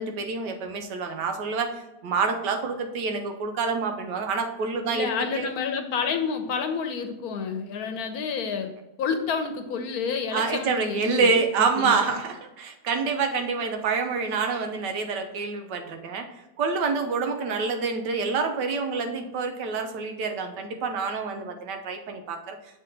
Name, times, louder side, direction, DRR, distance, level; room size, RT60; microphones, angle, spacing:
voice 1, 0.0-5.5 10.3-22.6, right 4 dB, 85° right, 6 dB, 1.4 m, -27 dB
voice 2, 4.9-8.7 9.0-11.3 11.7-11.9, left 6 dB, 70° left, 7 dB, 1.1 m, -29 dB
6.7 x 3.8 x 3.8 m, 0.98 s
omnidirectional pair, 1.8 m